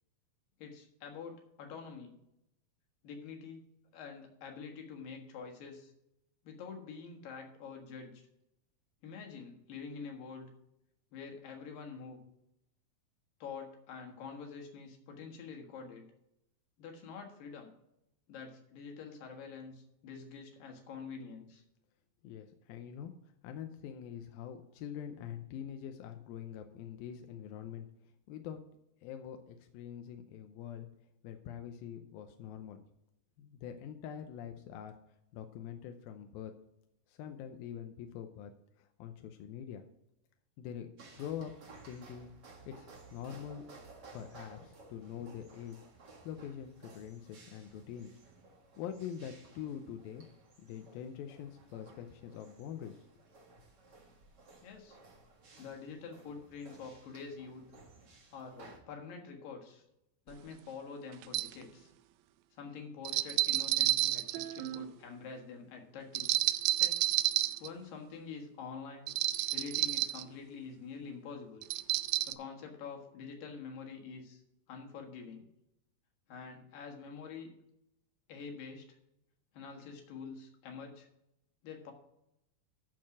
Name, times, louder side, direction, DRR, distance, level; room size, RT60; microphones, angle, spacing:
voice 1, 0.6-2.1 3.0-3.6 3.9-5.9 6.4-8.2 9.0-10.5 11.1-12.2 13.4-16.1 16.8-17.7 18.3-21.6 54.6-55.0 55.6-57.7 58.3-59.8 60.3-61.9 62.5-66.3 66.8-67.0 67.6-69.1 69.5-71.6 72.3-74.4 74.7-75.5 76.3-77.5 78.3-78.9 79.5-81.1 81.6-81.9, left 5 dB, 70° left, 3 dB, 3.3 m, -46 dB
voice 2, 22.2-23.1 23.4-27.9 28.3-28.6 29.0-30.9 31.2-32.8 33.4-34.9 35.3-36.5 37.1-38.5 38.8-39.9 40.6-40.9 41.1-41.5 41.9-42.3 42.7-43.6 44.1-45.8 46.2-48.1 48.8-50.3 50.6-53.0, left 9 dB, 90° left, 6 dB, 2.5 m, -44 dB
sound 1, 41.0-58.8, right 3 dB, 40° right, 1.7 m, -57 dB
sound 2, 60.3-60.4 61.2-61.6 63.1-64.9 66.2-67.7 69.1-70.2 71.6-72.3, right 16 dB, 85° right, 2.3 m, -30 dB
13.5 x 4.6 x 6.0 m, 0.83 s
omnidirectional pair, 4.2 m